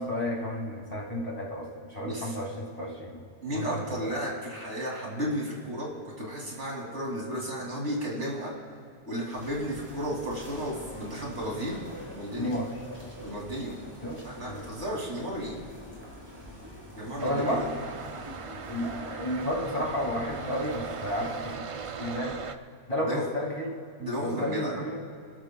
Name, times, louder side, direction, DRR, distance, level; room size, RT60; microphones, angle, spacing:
voice 1, 0.0-3.2 3.5-4.1 12.4-12.7 14.0-14.7 17.2-17.6 18.7-21.6 22.0-22.3 22.9-23.7 24.2-25.0, left 1 dB, 30° left, -3 dB, 2.5 m, -32 dB
voice 2, 3.4-8.5 9.1-11.8 12.1-12.5 13.2-13.8 14.2-15.6 17.0-17.7 23.0-23.3 24.0-24.7, equal, 70° right, -3 dB, 3.1 m, -33 dB
sound 1, 9.3-21.5, equal, 20° right, 3.1 m, -45 dB
sound 2, 17.2-22.6, right 6 dB, 50° right, 0.4 m, -39 dB
29.0 x 13.5 x 2.3 m, 2.3 s
omnidirectional pair, 1.2 m